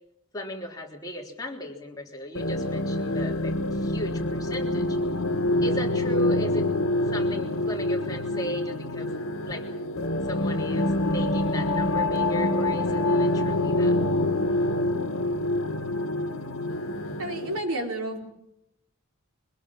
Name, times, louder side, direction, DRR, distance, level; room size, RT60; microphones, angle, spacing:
voice 1, 0.3-5.0 5.6-6.7 7.1-9.1 9.5-9.7 10.2-14.0, equal, 15° left, 0 dB, 3.5 m, -36 dB
sound 1, 2.3-17.6, left 1 dB, 75° left, 1.6 m, -26 dB
voice 2, 17.2-18.3, right 1 dB, 90° right, 1 dB, 4.4 m, -31 dB
24.0 x 20.5 x 7.5 m, 0.81 s
head